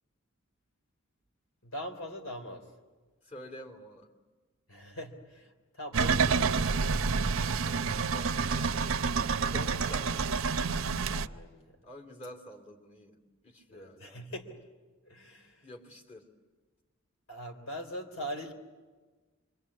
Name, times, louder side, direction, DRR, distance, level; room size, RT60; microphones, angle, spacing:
voice 1, 1.6-2.7 4.7-6.9 9.5-10.0 10.7-11.8 13.7-14.6 15.0-15.7 17.3-18.5, equal, 70° left, 5 dB, 3.6 m, -42 dB
voice 2, 3.2-4.1 7.6-8.8 9.5-10.3 11.8-13.2 13.4-14.2 15.6-16.3, left 1 dB, 35° left, 4 dB, 3.2 m, -48 dB
sound 1, 5.9-11.3, right 5 dB, 75° right, 0.7 m, -28 dB
25.5 x 24.5 x 8.6 m, 1.3 s
head